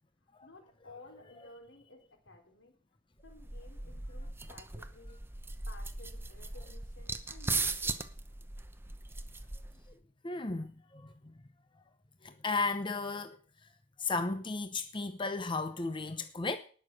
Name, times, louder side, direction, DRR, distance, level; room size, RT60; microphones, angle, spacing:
voice 1, 0.4-2.7 3.2-5.2 5.7-8.0, left 2 dB, 85° left, 3.9 m, -55 dB
sound 1, 3.3-9.9, right 3 dB, 10° right, 0.9 m, -38 dB
voice 2, 10.2-11.1 12.2-13.4 14.0-16.6, left 3 dB, 25° left, 0.8 m, -34 dB
19.0 x 6.7 x 6.1 m
head